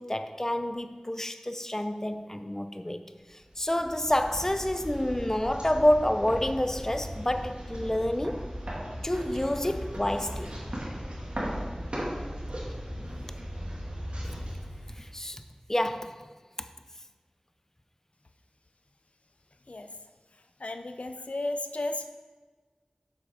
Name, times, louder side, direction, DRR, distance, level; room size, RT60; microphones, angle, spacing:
voice 1, 0.0-3.0 3.6-8.5 9.0-10.5 15.0-15.4 15.7-16.2 16.6-16.7, left 1 dB, 20° left, 0.5 m, -28 dB
sound 1, 3.4-15.4, equal, 60° right, 2.1 m, -37 dB
voice 2, 20.6-22.1, left 2 dB, 75° left, 0.5 m, -34 dB
7.7 x 6.0 x 5.0 m
wide cardioid pair, 40°, 2 cm